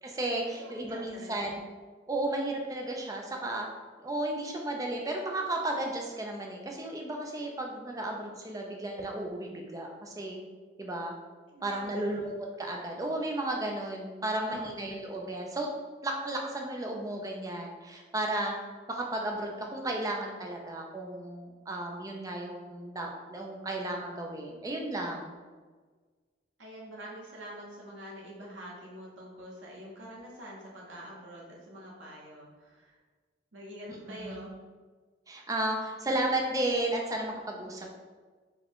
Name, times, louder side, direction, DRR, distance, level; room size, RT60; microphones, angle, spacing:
voice 1, 0.0-1.6 2.1-3.7 4.0-10.4 10.8-11.2 11.6-15.7 16.0-18.6 18.9-25.4 33.9-34.5 35.3-38.0, right 1 dB, 20° right, 1 dB, 0.5 m, -34 dB
voice 2, 0.6-1.5 11.5-12.3 14.4-14.9 26.6-33.0 33.5-34.5, equal, 85° right, -3 dB, 1.1 m, -46 dB
4.7 x 2.4 x 3.6 m, 1.4 s
head